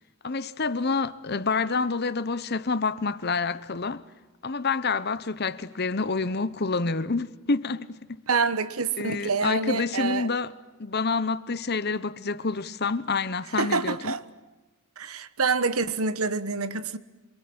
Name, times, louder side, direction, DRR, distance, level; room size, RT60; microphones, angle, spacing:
voice 1, 0.2-4.0 4.4-8.0 9.0-10.5 10.8-14.1, left 4 dB, 45° left, 1.0 m, -28 dB
voice 2, 8.3-10.3 13.5-14.2 15.0-17.0, right 4 dB, 75° right, 1.4 m, -27 dB
27.0 x 24.0 x 8.8 m
head